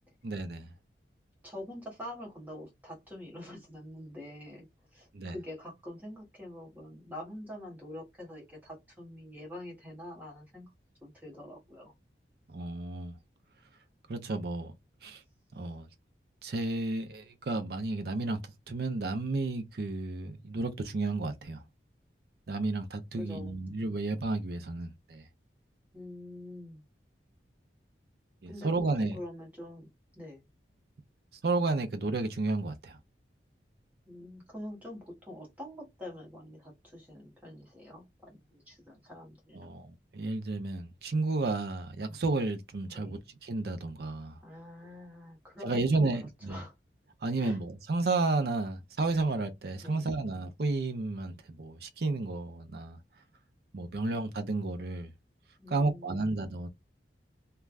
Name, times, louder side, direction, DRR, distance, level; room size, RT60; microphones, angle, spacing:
voice 1, 0.2-0.7 5.1-5.4 12.5-13.2 14.1-14.7 15.0-15.2 15.5-15.9 16.4-21.6 22.5-25.2 28.4-29.2 31.4-33.0 39.5-44.4 45.6-46.6 47.2-53.0 53.7-55.1 55.7-56.7, right 3 dB, 60° right, 0.5 m, -32 dB
voice 2, 1.4-10.7 11.0-11.9 23.1-24.0 25.9-26.8 28.5-28.7 29.0-30.5 34.0-39.8 42.9-43.2 44.4-46.1 46.5-46.7 47.4-47.6 49.8-50.2 55.6-56.4, left 1 dB, 10° right, 1.2 m, -45 dB
3.2 x 2.3 x 2.3 m
head